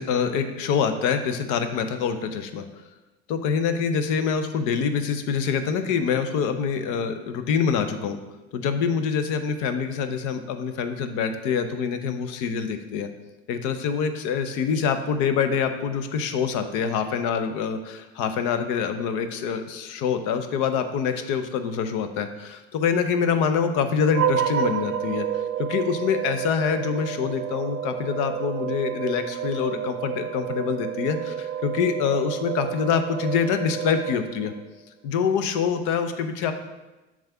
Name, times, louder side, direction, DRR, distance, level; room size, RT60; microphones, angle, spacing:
voice 1, 0.0-2.7 3.3-8.2 8.5-13.1 13.5-34.5 35.0-36.5, left 6 dB, 70° left, 9 dB, 0.7 m, -25 dB
sound 1, 24.1-34.7, right 9 dB, 45° right, 0.6 m, -30 dB
7.3 x 2.4 x 5.5 m, 1.1 s
hypercardioid pair, 80°, 32 cm